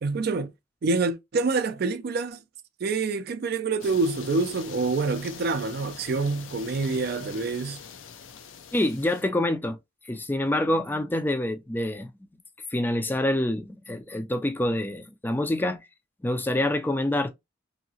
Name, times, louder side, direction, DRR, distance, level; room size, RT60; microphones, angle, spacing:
voice 1, 0.0-0.5 0.8-2.4 2.8-7.8, right 3 dB, 55° right, 0.4 m, -26 dB
sound 1, 3.8-9.2, left 7 dB, 90° left, 0.5 m, -43 dB
voice 2, 8.7-9.8 10.1-12.1 12.7-15.8 16.2-17.3, left 1 dB, 10° left, 0.4 m, -26 dB
2.8 x 2.8 x 2.7 m
head